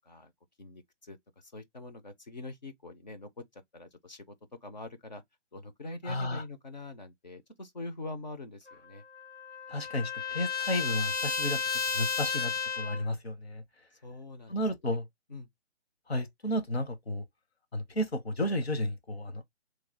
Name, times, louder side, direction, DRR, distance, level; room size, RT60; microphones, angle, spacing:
voice 1, 0.6-4.3 4.6-5.2 5.5-9.0 14.0-14.6 15.3-15.5, left 2 dB, 40° left, 0.7 m, -44 dB
voice 2, 6.0-6.4 9.7-13.6 14.5-15.0 16.1-17.2 17.7-19.4, left 1 dB, 60° left, 1.1 m, -32 dB
Trumpet, 8.7-13.1, left 5 dB, 85° left, 0.9 m, -33 dB
3.2 x 2.3 x 3.7 m
figure-of-eight pair, 145°, 35 cm